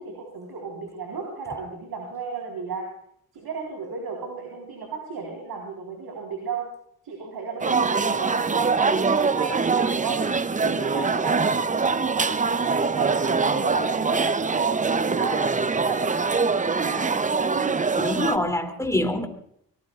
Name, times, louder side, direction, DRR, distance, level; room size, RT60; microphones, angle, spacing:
voice 1, 0.0-2.9 3.3-6.6 7.0-10.2 10.6-15.5 15.8-17.1, right 4 dB, 85° right, 1 dB, 4.1 m, -34 dB
sound 1, 7.6-18.4, right 4 dB, 20° right, 0.6 m, -23 dB
voice 2, 17.9-19.3, left 1 dB, 10° left, 5 dB, 2.8 m, -25 dB
24.0 x 19.5 x 2.4 m, 0.68 s
cardioid pair, 75°, 37 cm